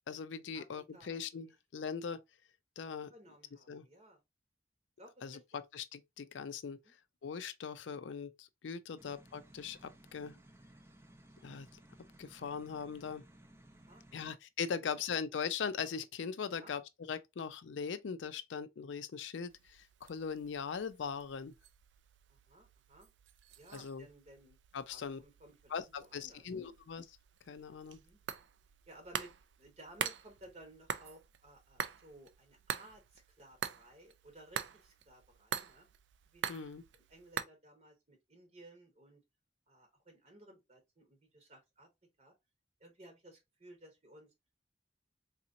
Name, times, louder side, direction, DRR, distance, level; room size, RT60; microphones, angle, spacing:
voice 1, 0.1-2.2 2.8-3.1 3.7-3.8 5.2-6.8 7.2-10.4 11.4-11.7 12.2-13.2 14.1-21.5 23.7-24.1 24.7-25.2 25.7-27.1 27.5-28.0 36.5-36.8, left 6 dB, 85° left, 0.4 m, -40 dB
voice 2, 0.9-1.5 3.1-4.2 5.0-5.6 6.8-6.9 8.9-9.0 10.2-10.4 13.7-14.3 14.9-15.0 16.5-16.8 22.3-23.1 23.6-24.6 24.9-25.7 26.0-26.7 28.0-28.2 28.9-29.3 29.6-35.9 36.3-36.6 36.9-39.2 39.7-41.9 42.2-42.3 42.8-44.3, right 1 dB, 35° right, 0.9 m, -58 dB
sound 1, 9.0-14.3, right 1 dB, 15° right, 0.5 m, -59 dB
sound 2, 19.5-37.4, right 8 dB, 75° right, 0.4 m, -45 dB
4.0 x 2.8 x 2.5 m
head